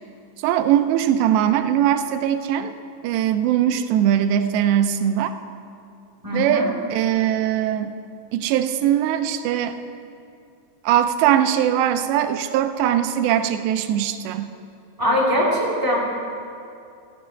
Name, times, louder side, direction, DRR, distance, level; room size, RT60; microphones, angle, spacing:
voice 1, 0.4-2.7 3.0-5.3 6.3-7.9 8.3-9.8 10.8-14.5, right 10 dB, 85° right, 9 dB, 2.9 m, -21 dB
voice 2, 6.2-6.7 15.0-16.0, equal, 10° right, -5 dB, 1.0 m, -21 dB
14.5 x 7.1 x 9.5 m, 2.5 s
omnidirectional pair, 4.9 m